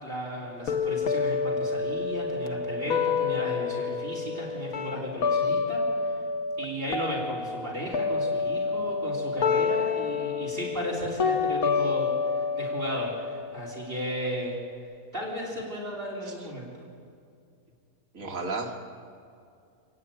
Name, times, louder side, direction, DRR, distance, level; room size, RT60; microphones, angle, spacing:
voice 1, 0.0-6.2 6.6-14.6 15.1-16.9, equal, 40° right, -2 dB, 3.9 m, -35 dB
sound 1, 0.7-6.7 6.9-14.7, left 5 dB, 80° left, 1.5 m, -29 dB
voice 2, 18.1-18.8, right 3 dB, 65° right, 0 dB, 2.3 m, -33 dB
29.0 x 10.0 x 9.0 m, 2.4 s
omnidirectional pair, 1.5 m